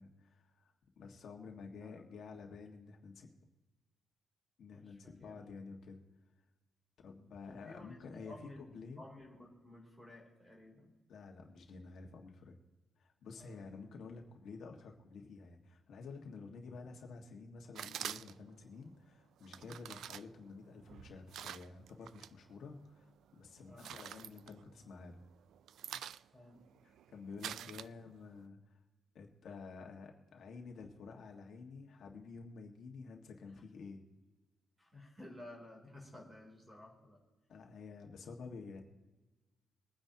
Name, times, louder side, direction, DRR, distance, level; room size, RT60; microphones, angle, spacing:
voice 1, 0.0-3.3 4.6-6.0 7.0-9.0 11.1-12.6 13.0-25.2 27.1-28.8 29.1-34.0 37.5-38.8, left 4 dB, 55° left, 2 dB, 1.7 m, -50 dB
voice 2, 1.6-2.0 4.7-5.5 7.5-11.0 13.4-13.7 16.4-16.6 19.9-20.1 23.6-24.0 26.3-26.8 27.4-27.7 34.8-37.2, left 1 dB, 15° right, -1 dB, 3.2 m, -55 dB
sound 1, 17.7-18.6 19.4-22.3 22.7-23.2 23.6-25.1 25.4-28.4, right 10 dB, 70° right, 0.3 m, -47 dB
23.5 x 9.8 x 2.9 m, 1.1 s
cardioid pair, 175°, 0 cm